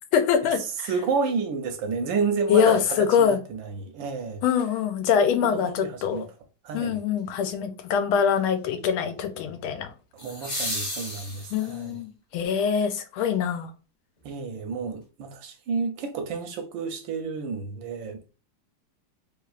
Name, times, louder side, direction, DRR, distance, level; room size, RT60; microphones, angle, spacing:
voice 1, 0.1-0.9 2.5-3.4 4.4-6.3 6.7-9.9 11.5-13.7, left 7 dB, 80° left, 1.4 m, -24 dB
voice 2, 0.8-4.4 5.4-6.3 6.6-7.0 10.1-12.0 14.2-18.3, right 5 dB, 75° right, 1.3 m, -30 dB
sound 1, 4.5-4.6 10.2-12.0 14.2-14.3, left 1 dB, 25° left, 1.5 m, -34 dB
3.4 x 3.3 x 2.4 m
omnidirectional pair, 2.3 m